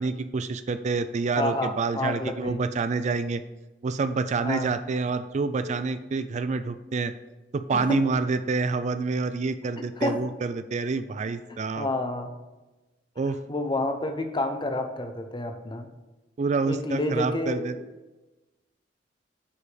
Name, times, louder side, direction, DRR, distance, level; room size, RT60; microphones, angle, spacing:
voice 1, 0.0-3.4 3.8-7.1 7.5-11.9 13.2-13.4 16.4-17.7, right 4 dB, 40° right, 11 dB, 0.4 m, -27 dB
voice 2, 1.4-2.6 4.4-4.7 7.7-8.0 10.0-10.2 11.8-12.3 13.5-15.9 16.7-17.8, left 1 dB, 25° left, 7 dB, 0.8 m, -29 dB
8.5 x 4.8 x 5.0 m, 1.1 s
head